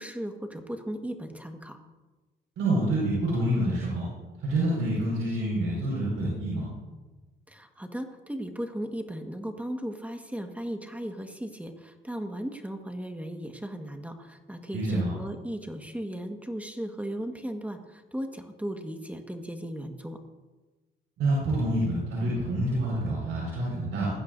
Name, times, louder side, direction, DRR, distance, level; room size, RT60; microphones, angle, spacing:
voice 1, 0.0-1.8 7.5-20.2, equal, 5° right, 4 dB, 1.6 m, -36 dB
voice 2, 2.6-4.1 4.4-6.7 14.7-15.1 21.2-24.1, right 1 dB, 85° right, -6 dB, 5.3 m, -27 dB
20.0 x 15.0 x 2.7 m, 1.2 s
cardioid pair, 70°, 21 cm